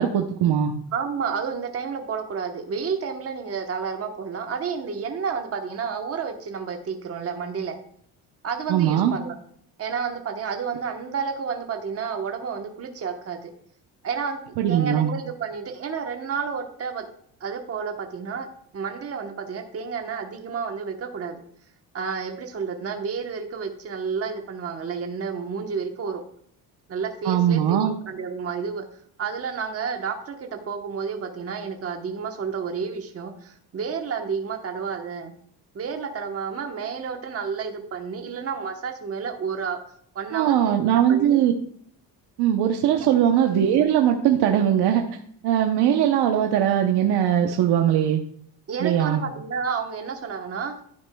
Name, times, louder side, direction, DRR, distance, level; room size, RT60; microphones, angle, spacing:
voice 1, 0.0-0.7 8.7-9.1 14.6-15.1 27.2-27.9 40.3-41.5 42.4-45.0 45.4-48.2 48.8-49.2, right 10 dB, 80° right, 4 dB, 0.9 m, -20 dB
voice 2, 0.9-7.8 8.4-9.3 9.8-13.5 14.0-17.1 17.4-18.5 18.7-21.4 21.9-26.2 26.9-28.8 29.2-35.3 35.7-39.8 40.1-41.4 42.9-43.1 48.7-50.8, right 6 dB, 35° right, 4 dB, 1.1 m, -30 dB
11.5 x 9.6 x 2.3 m, 0.65 s
cardioid pair, 135°, 39 cm